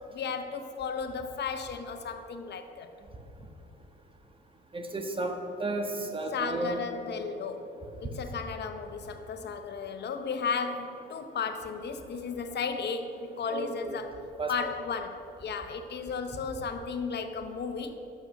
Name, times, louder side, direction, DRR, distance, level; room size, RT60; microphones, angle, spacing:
voice 1, 0.1-2.9 6.3-14.2 14.5-17.9, left 5 dB, 60° left, 0.8 m, -34 dB
voice 2, 4.7-6.8 13.5-14.0 14.4-14.7, right 2 dB, 25° right, 1.4 m, -33 dB
9.8 x 7.7 x 6.4 m
cardioid pair, 90°, 20 cm